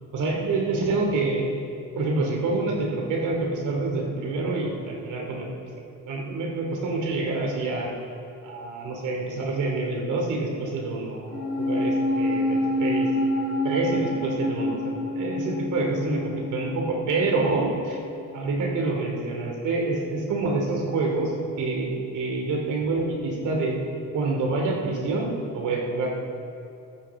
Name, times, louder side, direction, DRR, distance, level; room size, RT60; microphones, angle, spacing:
voice 1, 0.1-1.5 2.0-5.5 6.1-7.9 8.4-13.1 13.6-18.0 18.3-21.3 21.6-23.8 24.1-26.1, right 3 dB, 80° right, 0 dB, 2.7 m, -27 dB
sound 1, 11.3-17.8 18.1-18.2, left 1 dB, 45° left, 2.8 m, -27 dB
15.0 x 14.0 x 3.7 m, 2.7 s
cardioid pair, 90°, 30 cm